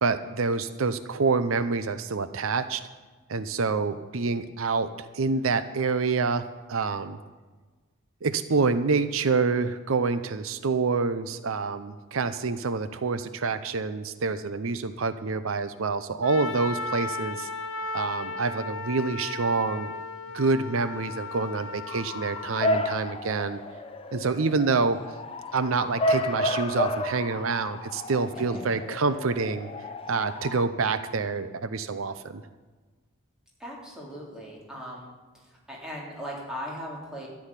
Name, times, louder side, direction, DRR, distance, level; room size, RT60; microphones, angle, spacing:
voice 1, 0.0-2.8 3.3-6.4 6.7-7.2 8.2-17.5 17.9-19.9 20.3-23.6 24.1-25.0 25.5-29.7 30.1-32.4, right 4 dB, 80° right, 12 dB, 0.7 m, -27 dB
Trumpet, 16.2-22.8, left 3 dB, 75° left, 1.6 m, -36 dB
Bark / Motor vehicle (road) / Siren, 21.9-30.6, left 1 dB, 25° left, 0.8 m, -31 dB
voice 2, 33.6-35.1 35.7-37.3, equal, 5° right, -4 dB, 3.3 m, -38 dB
13.0 x 6.3 x 9.8 m, 1.3 s
head